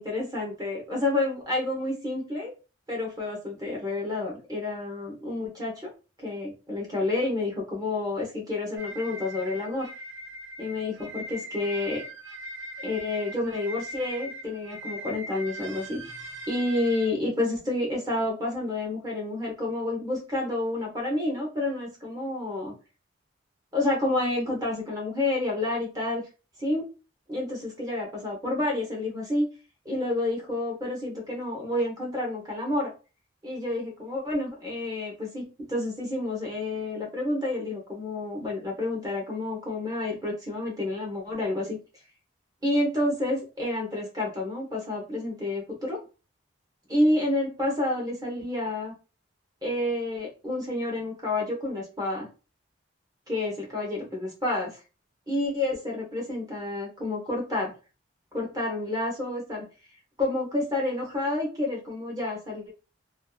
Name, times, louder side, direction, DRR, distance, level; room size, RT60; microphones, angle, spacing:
voice 1, 0.0-2.5 2.9-5.7 6.2-9.9 10.6-12.0 12.8-16.0 16.5-22.7 23.7-26.2 26.6-26.9 27.3-29.5 29.8-32.9 33.4-41.8 42.6-46.0 46.9-48.9 49.6-52.3 53.3-54.8 55.3-57.7 58.3-59.6 60.2-62.7, left 2 dB, 20° right, -1 dB, 0.8 m, -29 dB
sound 1, 8.8-17.1, equal, 70° right, 1.0 m, -40 dB
2.6 x 2.3 x 2.3 m, 0.33 s
head